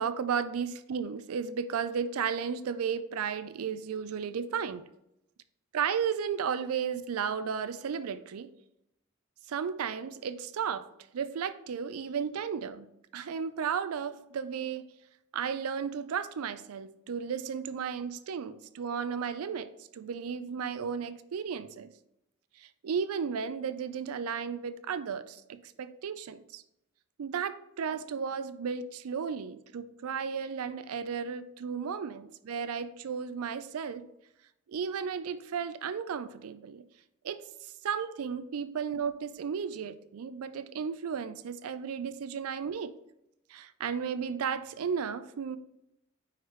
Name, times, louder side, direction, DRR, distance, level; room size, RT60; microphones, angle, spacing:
voice 1, 0.0-4.9 5.7-8.5 9.5-10.9 11.1-12.9 13.1-14.9 15.3-21.9 22.6-26.6 27.2-34.1 34.7-36.9 37.2-42.9 43.5-45.6, right 6 dB, 90° right, 0.4 m, -34 dB
9.4 x 3.3 x 3.1 m
head